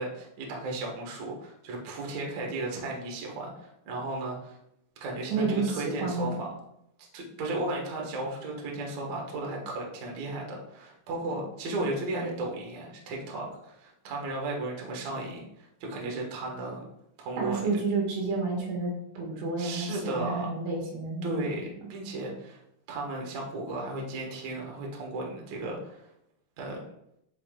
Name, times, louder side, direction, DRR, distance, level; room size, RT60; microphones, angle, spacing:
voice 1, 0.0-4.6 5.0-6.5 7.1-16.8 17.2-17.7 19.6-20.5 21.2-22.6 22.9-26.1 26.6-26.8, right 2 dB, 60° right, -1 dB, 1.9 m, -35 dB
voice 2, 5.3-6.4 17.4-21.6, right 3 dB, 85° right, -2 dB, 4.7 m, -30 dB
10.0 x 6.0 x 2.5 m, 0.77 s
omnidirectional pair, 5.8 m